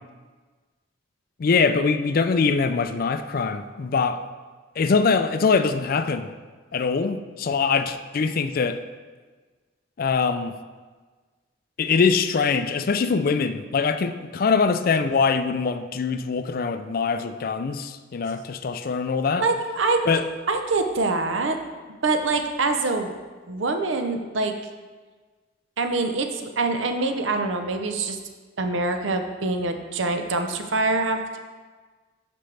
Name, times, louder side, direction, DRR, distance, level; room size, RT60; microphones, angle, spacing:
voice 1, 1.4-4.2 4.8-6.3 6.7-8.8 10.0-10.5 11.8-19.5 20.1-20.2, left 5 dB, 50° left, 10 dB, 0.4 m, -23 dB
voice 2, 19.4-20.0 20.5-21.6 22.0-23.1 23.5-24.5 25.8-28.2 28.6-31.4, right 3 dB, 75° right, 6 dB, 0.8 m, -24 dB
12.0 x 5.2 x 3.4 m, 1.4 s
head